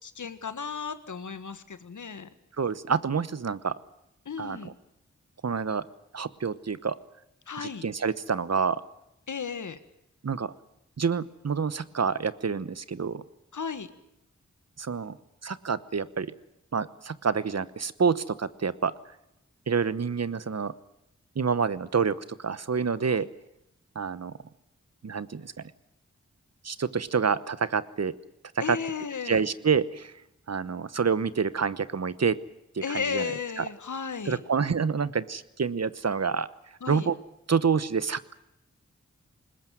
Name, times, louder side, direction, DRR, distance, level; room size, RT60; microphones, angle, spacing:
voice 1, 0.0-2.3 4.2-4.7 7.5-7.8 9.3-9.8 13.5-13.9 23.1-23.3 28.6-29.4 32.8-34.4 36.8-37.1, left 6 dB, 80° left, 11 dB, 1.5 m, -34 dB
voice 2, 2.6-3.7 4.4-4.7 5.4-5.9 6.1-6.9 7.6-8.8 10.2-10.5 11.0-13.2 14.8-15.2 15.4-16.3 16.7-18.9 19.7-20.7 21.3-23.3 23.9-24.3 25.0-25.7 26.6-28.1 28.6-28.8 29.2-30.1 30.5-32.4 32.7-33.7 34.3-36.5 36.9-37.2 37.5-38.3, right 6 dB, 60° right, 16 dB, 1.0 m, -28 dB
21.0 x 20.0 x 9.2 m, 0.83 s
cardioid pair, 45°, 30 cm